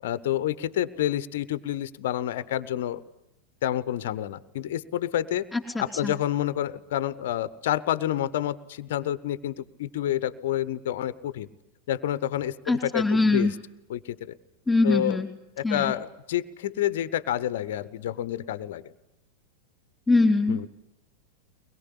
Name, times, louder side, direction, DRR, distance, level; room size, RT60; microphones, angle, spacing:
voice 1, 0.0-3.0 3.6-5.5 5.8-11.5 11.9-13.5 13.9-14.3 14.8-15.2 15.6-18.8 20.5-20.7, left 12 dB, 55° left, 16 dB, 1.0 m, -29 dB
voice 2, 5.5-6.1 12.7-13.5 14.7-15.3 15.6-15.9 20.1-20.7, left 3 dB, 5° left, -1 dB, 3.5 m, -23 dB
23.5 x 21.5 x 9.9 m, 0.89 s
figure-of-eight pair, 90°, 0 cm